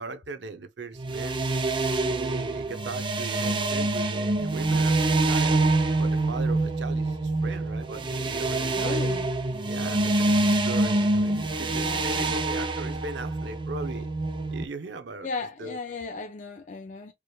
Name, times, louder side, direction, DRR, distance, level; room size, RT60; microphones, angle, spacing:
voice 1, 0.0-1.4 2.1-5.6 6.0-9.0 9.6-14.1 14.5-15.3 15.6-15.8, right 3 dB, 65° right, 0.7 m, -38 dB
sound 1, 1.0-14.6, right 2 dB, 25° right, 0.5 m, -26 dB
voice 2, 8.7-9.3 9.9-10.2 11.8-12.4 15.2-17.1, left 3 dB, 45° left, 0.4 m, -36 dB
4.6 x 3.2 x 2.3 m
head